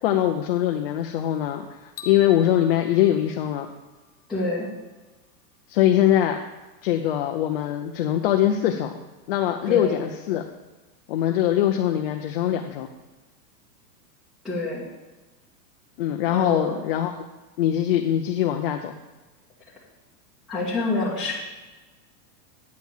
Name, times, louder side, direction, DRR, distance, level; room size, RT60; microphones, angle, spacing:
voice 1, 0.0-1.6 2.1-3.7 5.7-6.4 6.8-9.0 9.3-10.4 11.1-12.9 16.0-17.2 17.6-18.9, left 11 dB, 40° left, 4 dB, 0.4 m, -22 dB
sound 1, 2.0-4.2, left 4 dB, 70° left, 0.9 m, -44 dB
voice 2, 4.3-4.7 9.6-10.0 14.4-14.8 16.3-16.7 20.5-21.3, left 2 dB, ahead, -11 dB, 1.5 m, -26 dB
9.3 x 4.5 x 7.0 m, 1.2 s
supercardioid pair, 150°, 49 cm